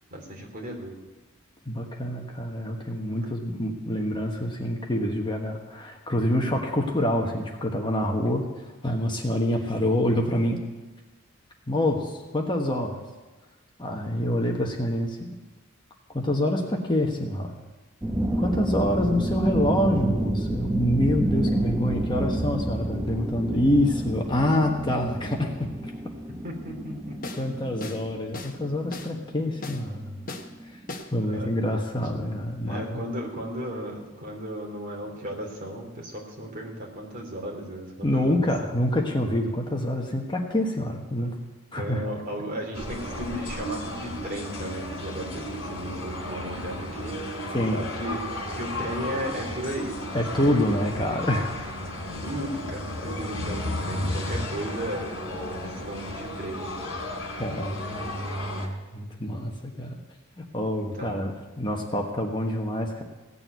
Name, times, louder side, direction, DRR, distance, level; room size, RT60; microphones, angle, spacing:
voice 1, 0.1-1.0 26.4-27.2 31.3-31.6 32.6-38.5 41.2-41.3 41.8-47.4 47.7-50.2 52.2-56.8 60.8-61.2, equal, 40° right, 0 dB, 3.0 m, -35 dB
voice 2, 1.6-10.6 11.7-12.9 13.8-15.3 16.1-17.5 18.4-25.9 27.4-30.1 30.6-30.8 31.1-33.0 38.0-41.4 41.7-42.0 47.5-47.8 50.1-51.6 57.4-60.0 60.4-61.3 61.6-63.0, left 1 dB, 20° left, 1 dB, 1.3 m, -26 dB
sound 1, 18.0-30.8, right 1 dB, 10° right, 0.9 m, -29 dB
sound 2, 27.2-27.5 27.8-28.1 28.3-28.6 28.9-29.1 29.6-29.8 30.3-30.5 30.9-31.1, left 2 dB, 40° left, 1.1 m, -37 dB
sound 3, 42.7-58.7, left 1 dB, 65° left, 3.0 m, -34 dB
17.0 x 7.0 x 9.3 m, 1.2 s
head